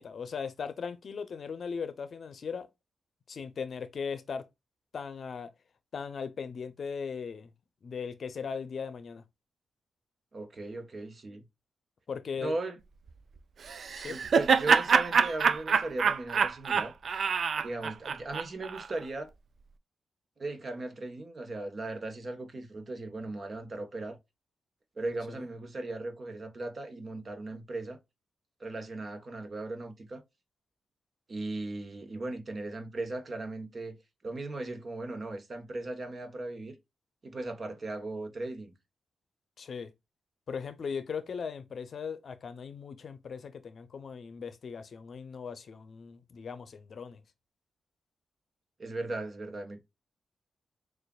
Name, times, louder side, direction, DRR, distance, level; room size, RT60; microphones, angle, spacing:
voice 1, 0.0-2.7 3.3-4.5 4.9-5.5 5.9-7.5 7.8-9.2 12.1-12.6 14.0-14.2 25.3-25.5 39.6-39.9 40.5-47.2, left 6 dB, 60° left, 0.6 m, -38 dB
voice 2, 10.3-11.4 12.4-12.8 14.1-16.9 17.6-19.3 20.4-24.2 25.0-28.0 28.6-30.2 31.3-34.0 34.2-36.7 37.2-38.7 48.8-49.8, right 2 dB, 45° right, 1.2 m, -37 dB
Laughter, 13.7-18.9, right 6 dB, 60° right, 0.4 m, -26 dB
6.4 x 2.5 x 2.3 m
cardioid pair, 95°, 0 cm